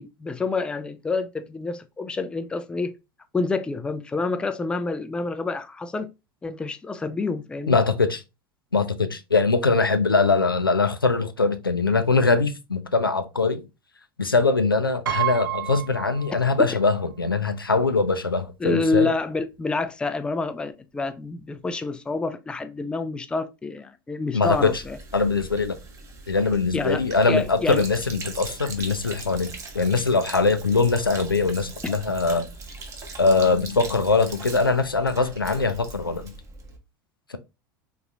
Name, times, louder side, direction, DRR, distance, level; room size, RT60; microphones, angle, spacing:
voice 1, 0.0-2.9 3.3-6.1 6.4-7.8 16.6-16.7 18.6-25.0 26.7-27.0 27.3-27.8 31.8-31.9, left 3 dB, 10° left, 0.3 m, -27 dB
voice 2, 7.7-8.2 8.7-13.7 14.2-19.1 24.3-24.8 25.1-25.8 26.3-32.5 33.2-36.3, left 3 dB, 90° left, 0.4 m, -22 dB
Piano, 15.1-16.9 17.2-17.3 18.5-18.6 18.8-19.1, right 15 dB, 70° right, 0.4 m, -30 dB
Sink (filling or washing), 24.4-36.8, right 3 dB, 30° right, 0.8 m, -40 dB
3.7 x 3.0 x 2.3 m
figure-of-eight pair, 80°, 11 cm